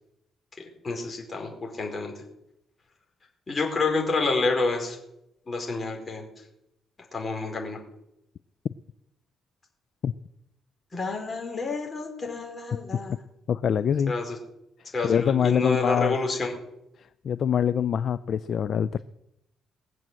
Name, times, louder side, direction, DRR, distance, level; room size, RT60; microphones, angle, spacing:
voice 1, 0.8-2.1 3.5-5.0 5.5-6.2 7.1-7.8 10.9-13.2 14.1-14.4 14.9-16.6, left 3 dB, 30° left, 1 dB, 4.9 m, -28 dB
voice 2, 13.5-14.1 15.0-16.2 17.2-19.0, left 8 dB, 55° left, 15 dB, 0.4 m, -24 dB
20.5 x 7.6 x 7.6 m, 0.84 s
cardioid pair, 90°, 0 cm